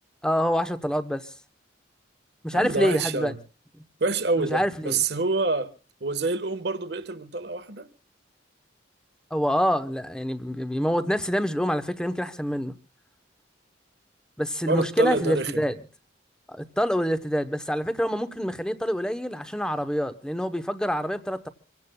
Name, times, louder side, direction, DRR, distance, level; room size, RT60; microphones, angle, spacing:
voice 1, 0.2-1.3 2.4-3.3 4.4-5.0 9.3-12.7 14.4-15.7 16.5-21.5, equal, 5° left, 0.9 m, -26 dB
voice 2, 2.5-3.3 4.0-5.7 6.0-7.9 14.7-15.6, right 3 dB, 60° right, 1.3 m, -27 dB
26.5 x 16.5 x 2.3 m
head